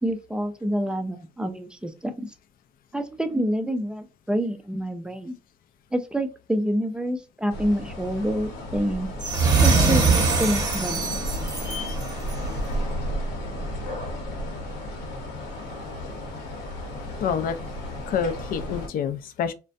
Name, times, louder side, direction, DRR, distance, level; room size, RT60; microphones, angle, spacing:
voice 1, 0.0-2.3 2.9-5.4 5.9-9.1 9.6-11.2, equal, 5° right, 0.4 m, -27 dB
sound 1, 7.5-18.9, equal, 85° left, 0.9 m, -33 dB
sound 2, 9.2-12.5, right 4 dB, 25° right, 0.9 m, -22 dB
voice 2, 17.2-17.6 18.1-19.5, left 7 dB, 60° left, 0.5 m, -27 dB
2.4 x 2.1 x 2.5 m
cardioid pair, 110°, 17 cm